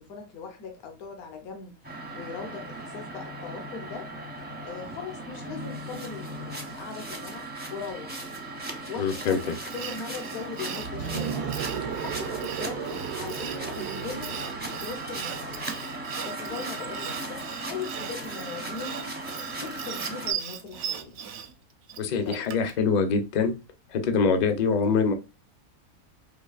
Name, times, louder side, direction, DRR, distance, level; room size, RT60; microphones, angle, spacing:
voice 1, 0.0-4.1 4.6-8.3 8.7-11.5 11.9-14.4 14.8-15.7 16.2-19.1 19.6-21.2 22.1-22.5, left 5 dB, 75° left, 1.4 m, -40 dB
sound 1, 1.8-20.3, right 2 dB, 15° right, 0.4 m, -37 dB
voice 2, 9.0-9.4 22.0-23.5 23.9-25.1, left 5 dB, 55° left, 0.5 m, -24 dB
Sawing, 9.2-22.8, right 8 dB, 65° right, 0.7 m, -38 dB
sound 2, 10.8-15.8, right 8 dB, 80° right, 1.1 m, -35 dB
4.4 x 2.9 x 2.3 m
omnidirectional pair, 1.6 m